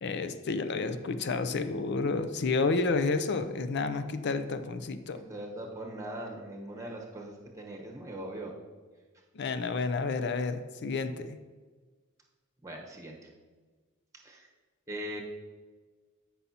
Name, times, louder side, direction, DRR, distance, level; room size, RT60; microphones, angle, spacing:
voice 1, 0.0-5.2 9.3-11.4, left 3 dB, 50° left, 10 dB, 0.4 m, -30 dB
voice 2, 5.1-8.5 12.6-13.2 14.2-14.5 14.9-15.2, right 1 dB, 15° right, 0 dB, 1.0 m, -40 dB
14.0 x 5.5 x 2.8 m, 1.4 s
head